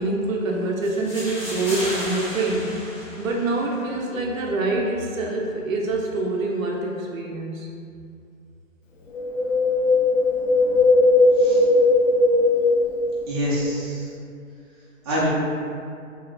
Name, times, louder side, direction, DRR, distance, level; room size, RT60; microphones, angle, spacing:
voice 1, 0.0-7.7, right 2 dB, 80° right, -1 dB, 0.6 m, -25 dB
sound 1, 0.8-3.8, equal, 20° left, 0.9 m, -34 dB
Wind, 9.1-13.5 13.7-13.8, left 2 dB, 75° left, 0.5 m, -18 dB
voice 2, 13.3-14.1 15.0-15.3, equal, 20° right, -10 dB, 0.5 m, -25 dB
2.8 x 2.3 x 2.3 m, 2.4 s
hypercardioid pair, 140°, 40 cm